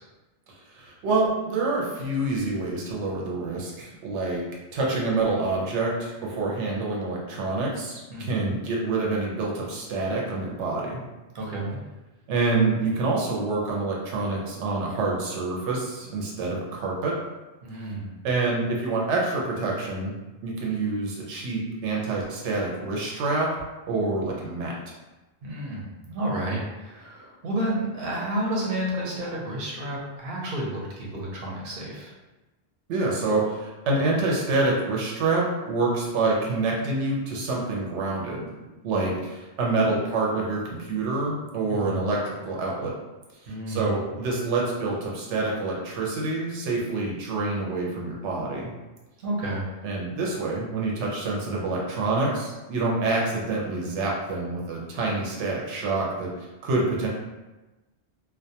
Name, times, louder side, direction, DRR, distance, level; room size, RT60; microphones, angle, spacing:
voice 1, 0.7-4.4 4.7-11.0 12.3-17.2 18.2-20.1 20.4-23.5 23.9-24.7 32.9-38.5 38.8-42.9 43.7-48.7 49.8-56.3 56.6-57.1, right 3 dB, 85° right, -2 dB, 0.9 m, -27 dB
voice 2, 8.1-8.5 11.3-11.8 17.6-18.1 25.4-32.1 41.7-42.1 43.5-44.0 49.2-49.7, right 1 dB, 60° right, -3 dB, 0.8 m, -31 dB
2.2 x 2.2 x 2.7 m, 1.1 s
omnidirectional pair, 1.2 m